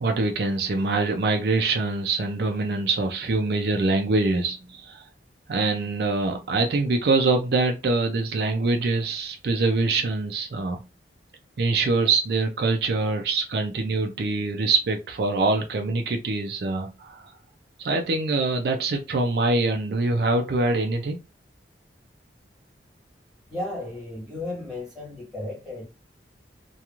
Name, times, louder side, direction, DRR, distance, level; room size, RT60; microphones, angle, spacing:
voice 1, 0.0-5.1 5.5-10.8 11.6-17.3 17.8-21.2, right 3 dB, 60° right, 0.4 m, -24 dB
voice 2, 23.5-25.9, left 2 dB, 5° right, 1.4 m, -34 dB
2.9 x 2.3 x 2.3 m
head